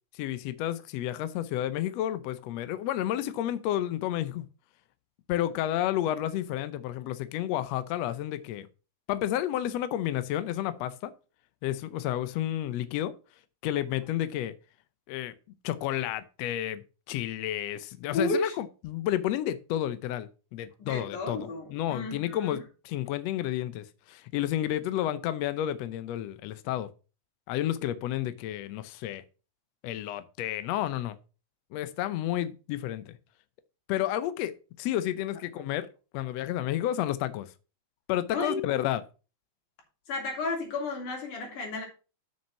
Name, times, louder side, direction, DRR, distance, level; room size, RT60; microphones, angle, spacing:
voice 1, 0.1-4.5 5.3-8.7 9.1-11.1 11.6-13.1 13.6-14.5 15.1-15.3 15.6-26.9 27.5-29.2 29.8-31.2 31.7-33.2 33.9-35.9 36.1-37.5 38.1-39.0, left 12 dB, 90° left, 1.4 m, -31 dB
voice 2, 18.1-18.6 20.8-22.6 27.8-27.9 35.6-35.7 38.3-38.6 40.1-41.9, left 3 dB, 65° left, 4.4 m, -32 dB
7.1 x 6.3 x 5.8 m
omnidirectional pair, 4.0 m